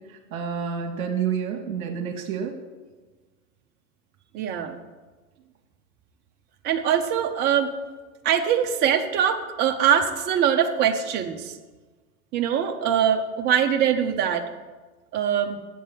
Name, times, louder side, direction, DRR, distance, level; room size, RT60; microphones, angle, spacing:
voice 1, 0.3-2.5, right 7 dB, 60° right, 2 dB, 1.3 m, -28 dB
voice 2, 4.3-4.8 6.6-7.7 8.2-11.5 12.3-14.5 15.1-15.6, right 8 dB, 20° right, 6 dB, 0.6 m, -22 dB
7.6 x 5.4 x 7.6 m, 1.3 s
hypercardioid pair, 105°, 47 cm